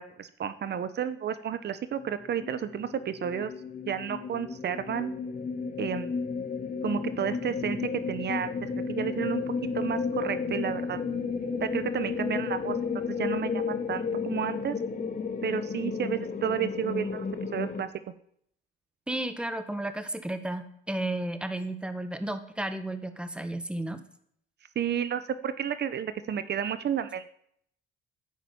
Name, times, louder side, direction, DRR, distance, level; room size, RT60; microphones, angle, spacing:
voice 1, 0.0-3.5 3.8-5.2 5.8-6.1 6.8-9.4 9.7-11.0 11.6-12.8 13.1-14.8 15.4-17.3 17.5-17.9 24.7-27.3, right 8 dB, 55° right, 12 dB, 1.0 m, -31 dB
sound 1, 2.0-17.8, left 5 dB, 45° left, 2.2 m, -33 dB
voice 2, 19.1-24.0, right 1 dB, 5° right, 9 dB, 1.6 m, -33 dB
10.0 x 10.0 x 8.7 m, 0.68 s
cardioid pair, 90°, 20 cm